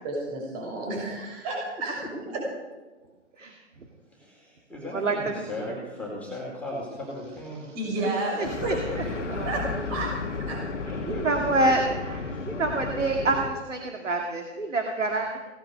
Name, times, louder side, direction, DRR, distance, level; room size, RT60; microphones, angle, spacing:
voice 1, 0.0-1.9 7.7-9.1 9.4-9.6 9.9-10.1 10.4-10.6, right 2 dB, 30° right, -2 dB, 6.5 m, -31 dB
voice 2, 3.4-3.9 4.9-5.5 8.0-9.0 9.3-9.7 10.9-15.4, right 2 dB, 80° right, 2 dB, 2.1 m, -28 dB
voice 3, 4.1-7.7 8.9-9.1 9.4-9.5 10.9-11.8 12.3-12.4, left 1 dB, 5° left, -5 dB, 4.2 m, -37 dB
sound 1, 8.4-13.5, left 4 dB, 70° left, 1.7 m, -33 dB
18.0 x 10.5 x 6.6 m, 1.2 s
figure-of-eight pair, 135°, 37 cm